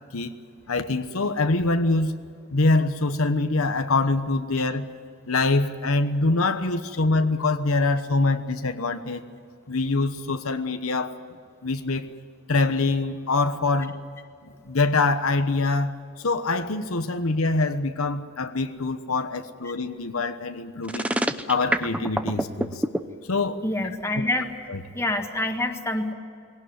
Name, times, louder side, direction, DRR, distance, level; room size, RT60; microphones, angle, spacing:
voice 1, 0.7-2.1 2.5-4.8 5.3-9.2 9.7-11.1 11.6-12.1 12.5-14.0 14.4-21.1 21.5-22.8 23.2-23.6 24.2-24.3 24.7-24.8, left 3 dB, 80° left, 9 dB, 1.1 m, -24 dB
sound 1, 20.8-23.0, right 1 dB, 5° right, 0.7 m, -25 dB
voice 2, 23.6-24.5 24.9-26.1, left 1 dB, 15° left, 4 dB, 1.6 m, -26 dB
21.5 x 18.0 x 9.5 m, 2.4 s
head